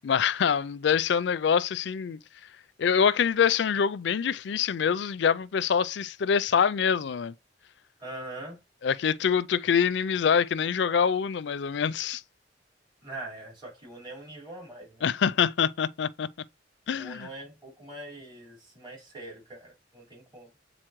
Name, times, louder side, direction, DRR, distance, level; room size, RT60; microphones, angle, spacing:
voice 1, 0.0-2.2 2.8-7.3 8.8-12.2 15.0-16.3 16.9-17.3, left 7 dB, 70° left, 0.4 m, -25 dB
voice 2, 8.0-8.6 13.0-15.0 17.0-20.5, right 1 dB, 25° right, 4.3 m, -42 dB
7.7 x 4.0 x 3.0 m
head